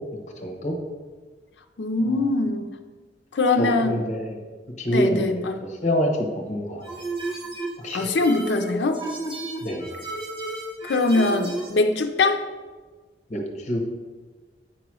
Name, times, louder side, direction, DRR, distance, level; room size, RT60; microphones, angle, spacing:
voice 1, 0.1-0.8 3.6-4.4 4.8-6.8 7.8-8.0 9.6-9.9 13.3-13.8, equal, 45° left, 1 dB, 1.2 m, -26 dB
voice 2, 1.8-2.7 3.3-4.0 4.9-5.6 7.9-9.0 10.8-12.5, left 3 dB, 85° left, 5 dB, 0.5 m, -22 dB
sound 1, 6.8-11.7, right 2 dB, 30° right, 1.4 m, -32 dB
8.9 x 3.0 x 6.1 m, 1.4 s
head